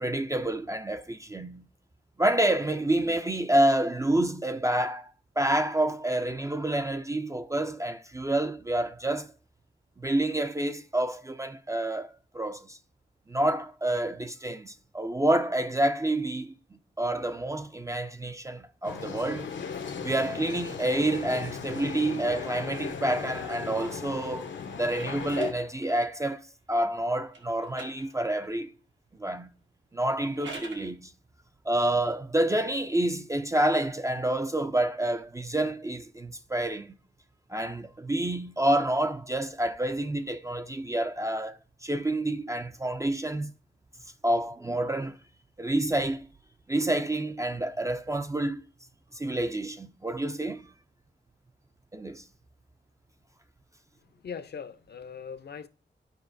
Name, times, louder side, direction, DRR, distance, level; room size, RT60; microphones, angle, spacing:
voice 1, 0.0-1.6 2.2-9.3 10.0-12.8 13.3-19.5 20.0-24.5 24.7-28.7 29.2-29.5 29.9-31.1 31.7-36.9 37.5-43.5 44.2-45.2 45.6-46.3 46.7-48.6 49.1-50.7 51.9-52.2, right 1 dB, 15° right, 0.3 m, -28 dB
sound 1, 18.8-25.5, left 6 dB, 85° left, 0.8 m, -37 dB
sound 2, 22.5-26.4 27.3-28.7 30.1-30.9, right 3 dB, 85° right, 1.4 m, -48 dB
voice 2, 54.2-55.7, left 6 dB, 60° left, 0.6 m, -40 dB
11.5 x 5.0 x 2.6 m
wide cardioid pair, 140°, 19 cm